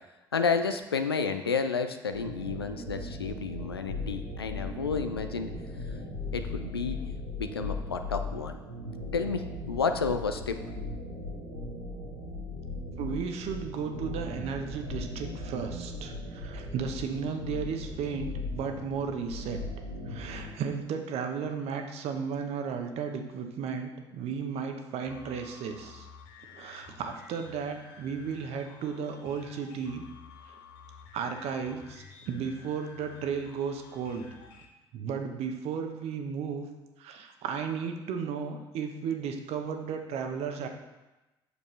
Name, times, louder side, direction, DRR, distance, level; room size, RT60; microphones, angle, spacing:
voice 1, 0.3-5.5 6.3-7.0 7.4-8.6 9.1-10.6, left 5 dB, 85° left, 7 dB, 0.4 m, -31 dB
sound 1, 2.1-20.6, left 2 dB, 85° right, 1.4 m, -38 dB
voice 2, 13.0-19.7 20.1-26.1 26.5-30.0 30.5-30.6 31.1-34.3 34.9-36.7 37.0-40.7, right 6 dB, 55° right, 5 dB, 0.9 m, -34 dB
sound 2, 25.1-34.7, left 6 dB, 70° left, 0.9 m, -51 dB
8.2 x 6.8 x 3.1 m, 1.1 s
figure-of-eight pair, 50°, 12 cm